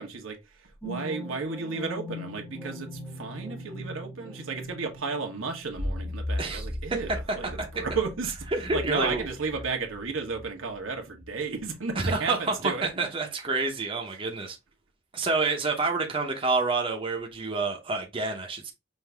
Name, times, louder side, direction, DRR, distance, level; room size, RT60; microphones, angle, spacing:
voice 1, 0.0-13.1, right 4 dB, 85° right, 1.3 m, -33 dB
sound 1, 0.8-11.3 11.6-11.7, left 1 dB, 5° left, 0.9 m, -38 dB
voice 2, 7.3-7.8 8.5-9.3 12.0-14.6 15.1-18.7, right 3 dB, 25° right, 0.8 m, -28 dB
5.5 x 2.7 x 3.4 m
head